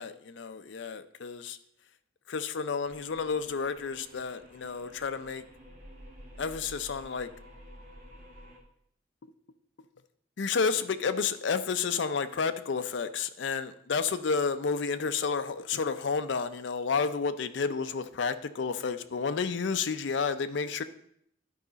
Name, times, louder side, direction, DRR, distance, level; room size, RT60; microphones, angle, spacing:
voice 1, 0.0-1.6 2.3-5.4 6.4-7.3 10.4-20.8, left 5 dB, 75° left, 10 dB, 0.5 m, -31 dB
sound 1, 2.8-8.6, equal, 45° right, 1.8 m, -51 dB
11.0 x 4.9 x 4.0 m, 0.70 s
head